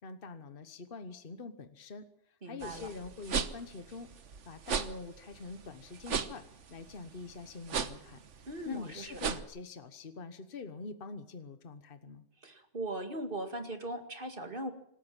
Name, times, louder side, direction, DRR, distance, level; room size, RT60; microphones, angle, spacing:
voice 1, 0.0-4.1 4.5-8.2 8.6-12.3, left 4 dB, 50° left, 10 dB, 1.4 m, -45 dB
voice 2, 2.4-2.9 8.5-9.2 12.4-14.7, right 1 dB, 45° right, 6 dB, 2.5 m, -39 dB
sound 1, 2.6-9.4, right 6 dB, 80° right, 1.5 m, -37 dB
26.5 x 13.5 x 7.4 m, 0.72 s
omnidirectional pair, 1.2 m